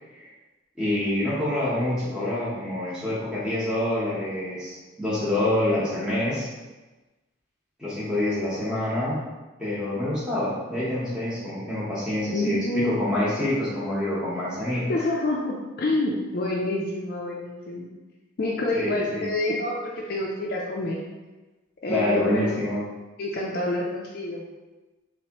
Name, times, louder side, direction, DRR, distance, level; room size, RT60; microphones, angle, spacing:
voice 1, 0.8-6.5 7.8-9.2 9.6-15.0 18.7-19.2 21.9-22.8, left 1 dB, 5° right, -9 dB, 1.0 m, -26 dB
voice 2, 12.3-13.2 14.9-17.9 18.4-21.0 21.8-22.6 23.2-24.4, left 2 dB, 50° left, -2 dB, 0.4 m, -27 dB
3.4 x 3.1 x 2.9 m, 1.2 s
head